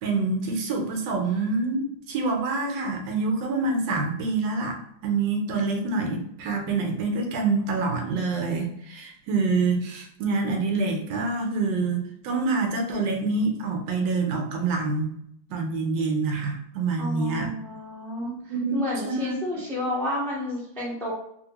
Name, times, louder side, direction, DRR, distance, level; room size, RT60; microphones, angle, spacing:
voice 1, 0.0-15.1 15.5-17.5 18.2-18.8 19.0-19.3, right 3 dB, 80° right, 2 dB, 1.3 m, -26 dB
voice 2, 17.0-21.1, left 1 dB, 5° left, -6 dB, 0.3 m, -31 dB
2.8 x 2.7 x 2.9 m, 0.72 s
omnidirectional pair, 2.0 m